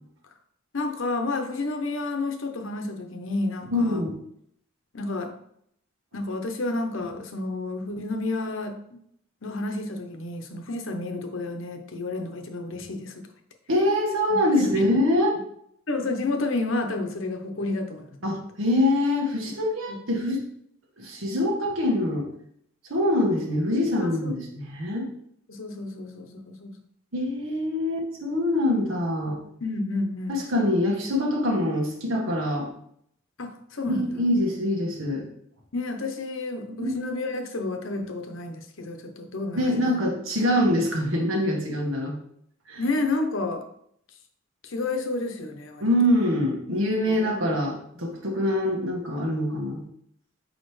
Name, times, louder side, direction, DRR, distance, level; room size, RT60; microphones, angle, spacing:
voice 1, 0.7-4.0 4.9-5.3 6.1-9.0 9.4-13.3 14.3-14.4 14.8-14.9 15.9-18.1 19.9-20.0 24.0-24.3 25.5-26.8 29.6-30.4 33.4-34.1 35.7-40.0 42.8-43.6 44.6-45.9 47.0-47.4, left 2 dB, 70° left, 5 dB, 0.9 m, -30 dB
voice 2, 3.7-4.2 13.7-15.4 18.2-20.4 21.0-22.3 22.9-25.1 27.1-29.4 30.3-32.7 33.8-35.2 36.6-36.9 39.5-42.2 42.7-42.8 45.8-49.8, left 1 dB, 85° right, 0 dB, 1.7 m, -24 dB
6.5 x 5.2 x 3.2 m, 0.70 s
head